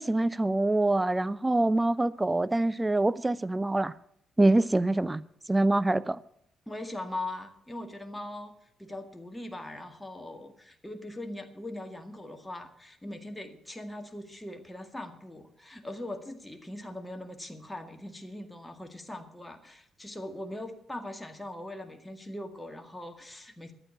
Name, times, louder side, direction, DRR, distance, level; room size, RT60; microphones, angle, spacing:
voice 1, 0.0-3.9 4.4-5.2 5.5-6.2, right 2 dB, 15° right, 0.6 m, -25 dB
voice 2, 6.7-23.7, left 1 dB, 10° left, 2.0 m, -41 dB
12.0 x 9.1 x 8.2 m
hypercardioid pair, 45°, 0 cm